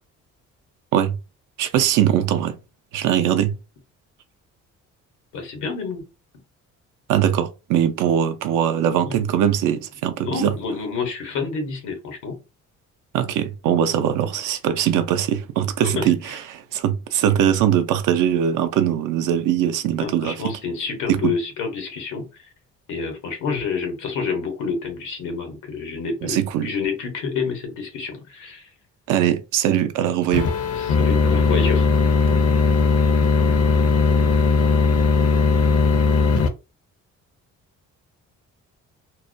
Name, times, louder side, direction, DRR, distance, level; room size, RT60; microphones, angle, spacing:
voice 1, 1.6-2.6 2.9-3.5 7.1-10.5 13.1-20.4 21.1-21.3 26.2-26.7 29.1-30.5, right 10 dB, 90° right, 0.5 m, -21 dB
voice 2, 5.3-6.0 9.0-9.2 10.2-12.4 15.8-16.4 20.0-22.5 22.9-28.7 30.8-31.9, left 5 dB, 90° left, 0.9 m, -28 dB
sound 1, 30.3-36.5, left 4 dB, 55° left, 0.5 m, -18 dB
2.3 x 2.1 x 2.5 m
cardioid pair, 90°, 30 cm